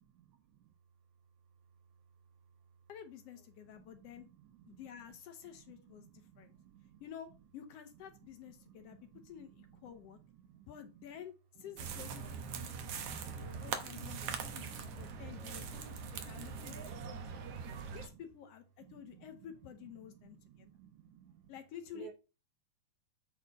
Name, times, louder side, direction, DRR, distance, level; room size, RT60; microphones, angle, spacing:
voice 1, 2.9-4.3 4.7-6.1 6.3-6.5 7.0-10.2 10.7-17.3 17.9-20.7 21.5-22.1, left 9 dB, 70° left, 1.5 m, -51 dB
voice 2, 6.0-7.0 10.5-10.7 12.7-13.4 14.3-14.8 15.3-15.6 16.5-16.6 16.9-18.0 18.9-19.3 20.2-21.3 22.0-22.1, right 10 dB, 80° right, 2.1 m, -57 dB
sound 1, 11.8-18.1, right 6 dB, 65° right, 1.8 m, -42 dB
8.3 x 4.2 x 4.0 m
omnidirectional pair, 3.4 m